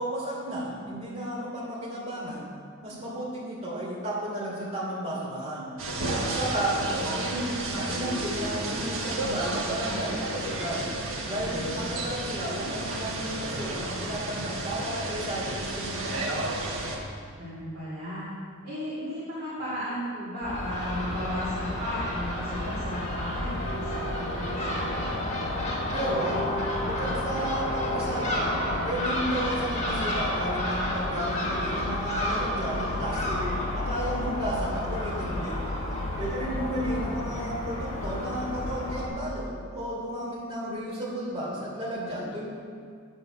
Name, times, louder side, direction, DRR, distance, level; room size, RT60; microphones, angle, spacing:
voice 1, 0.0-2.5 2.8-5.7 6.2-10.9 11.3-16.3 25.9-26.5 26.8-35.6 36.2-42.5, right 1 dB, 30° right, -6 dB, 3.0 m, -33 dB
sound 1, 5.8-17.0, right 2 dB, 60° right, 1.4 m, -32 dB
voice 2, 11.4-12.0 17.4-18.3 18.6-25.2 36.6-37.2, equal, 45° right, -11 dB, 2.4 m, -35 dB
Crow / Gull seagull, 20.4-39.1, left 1 dB, 30° left, 1.5 m, -30 dB
8.7 x 6.4 x 6.6 m, 2.1 s
head